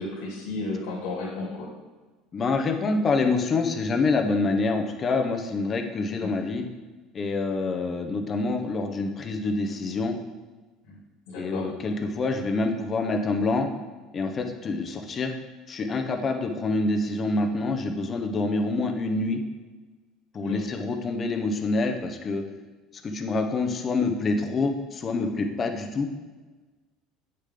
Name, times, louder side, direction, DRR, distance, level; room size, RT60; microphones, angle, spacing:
voice 1, 0.0-1.7 6.2-6.3 10.9-11.0 11.3-11.7 20.4-20.7, left 3 dB, 75° left, -8 dB, 2.8 m, -33 dB
voice 2, 2.3-6.6 7.1-10.2 11.3-13.7 14.1-15.3 15.7-19.4 20.3-22.4 23.0-26.1, left 3 dB, 30° left, 5 dB, 1.0 m, -26 dB
8.3 x 6.7 x 3.9 m, 1.3 s
supercardioid pair, 115°, 0 cm